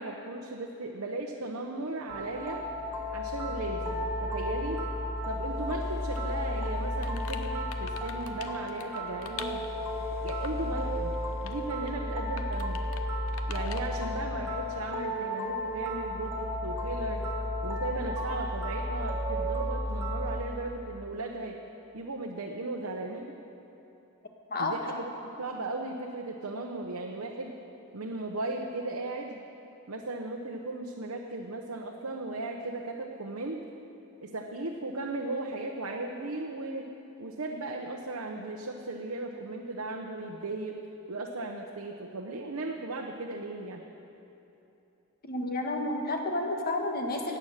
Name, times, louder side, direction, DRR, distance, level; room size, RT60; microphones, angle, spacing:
voice 1, 0.0-2.6 3.1-4.8 5.2-9.7 10.1-11.1 11.4-12.8 13.5-17.3 17.6-21.6 21.9-23.4 24.6-27.6 27.9-29.4 29.9-33.6 34.2-36.9 37.2-40.8 41.1-43.8, right 2 dB, 75° right, 0 dB, 0.9 m, -36 dB
sound 1, 2.1-20.4, left 1 dB, 10° right, 1.4 m, -33 dB
sound 2, 6.1-6.2 6.6-9.8 10.3-10.7 11.1-11.6 11.9-12.0 12.4-13.0 13.3-13.9, left 7 dB, 70° left, 0.8 m, -44 dB
voice 2, 45.2-47.4, left 2 dB, 45° left, 3 dB, 1.4 m, -30 dB
16.0 x 9.1 x 6.6 m, 2.9 s
head